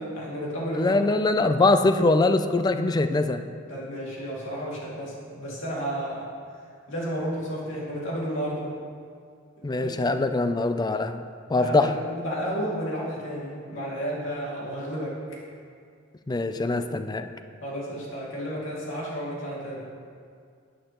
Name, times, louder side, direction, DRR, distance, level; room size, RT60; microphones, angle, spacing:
voice 1, 0.0-1.0 3.7-6.3 6.9-8.7 9.6-9.9 10.2-10.3 11.6-15.2 17.6-19.8, equal, 70° left, -5 dB, 2.5 m, -32 dB
voice 2, 0.7-3.4 9.6-11.2 11.5-11.9 16.3-17.3, left 2 dB, 20° left, 9 dB, 0.4 m, -22 dB
11.0 x 8.9 x 3.0 m, 2.2 s
head